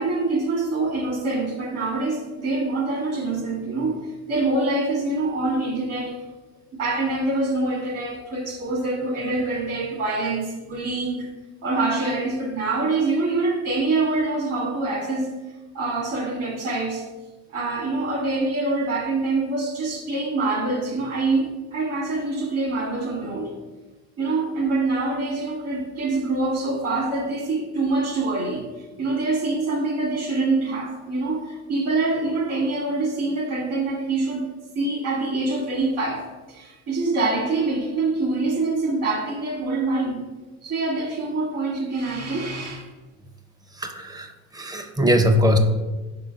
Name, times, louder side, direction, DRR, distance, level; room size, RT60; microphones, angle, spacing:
voice 1, 0.0-4.0 4.3-6.1 6.7-11.3 11.6-15.3 15.7-17.1 17.5-23.5 24.2-34.4 34.8-40.2 40.6-42.9, right 3 dB, 55° right, 0 dB, 1.9 m, -25 dB
voice 2, 43.7-45.6, equal, 15° right, 6 dB, 0.5 m, -21 dB
5.1 x 3.7 x 5.1 m, 1.2 s
cardioid pair, 125°, 31 cm